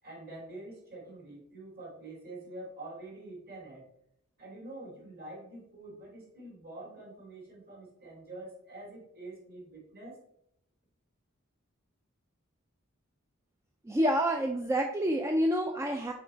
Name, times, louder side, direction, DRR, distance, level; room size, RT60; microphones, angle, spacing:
voice 1, 0.0-3.9 4.4-10.2, right 2 dB, 45° right, -3 dB, 2.8 m, -46 dB
voice 2, 13.9-16.1, equal, 15° right, 3 dB, 0.3 m, -28 dB
5.8 x 4.6 x 4.3 m, 0.73 s
head